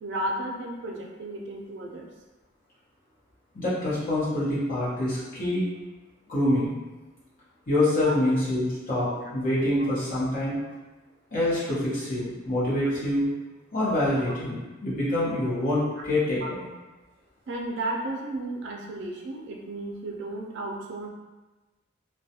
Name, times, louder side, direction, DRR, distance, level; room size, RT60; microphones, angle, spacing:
voice 1, 0.0-2.1 8.0-8.1 9.2-9.3 14.3-14.4 16.0-16.1 16.4-16.5 17.5-21.1, right 1 dB, 60° right, 1 dB, 0.4 m, -33 dB
voice 2, 3.5-5.6 6.3-6.7 7.7-10.6 11.3-13.2 13.7-16.4, left 1 dB, 45° left, -9 dB, 0.9 m, -26 dB
2.3 x 2.1 x 2.7 m, 1.2 s
head